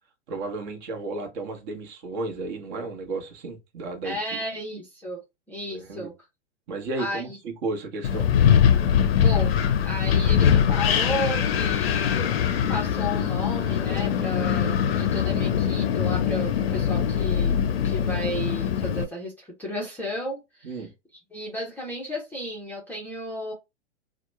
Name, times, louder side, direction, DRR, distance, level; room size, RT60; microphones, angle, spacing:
voice 1, 0.3-4.2 5.7-6.1 6.7-8.3 20.6-20.9, right 3 dB, 40° right, 1.0 m, -33 dB
voice 2, 4.0-5.2 5.5-6.1 7.0-7.4 9.1-12.3 12.7-17.6 17.8-20.9 21.3-23.5, left 1 dB, 5° left, 0.6 m, -33 dB
Wind, 8.0-19.0, left 8 dB, 55° left, 0.6 m, -22 dB
2.9 x 2.1 x 3.2 m
hypercardioid pair, 115°, 36 cm